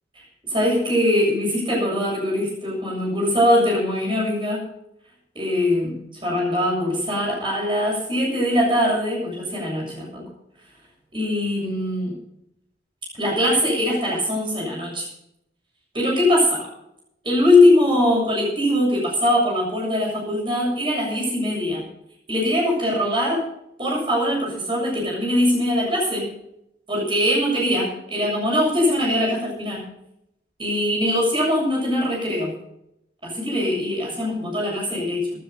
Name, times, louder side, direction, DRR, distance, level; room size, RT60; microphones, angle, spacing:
voice 1, 0.4-4.6 5.4-10.3 11.1-12.2 13.2-15.1 15.9-16.7 17.2-21.8 22.3-23.4 23.8-26.3 26.9-29.9 30.6-32.5 33.2-35.3, left 1 dB, 30° right, -2 dB, 7.2 m, -21 dB
17.0 x 9.9 x 5.4 m, 0.82 s
head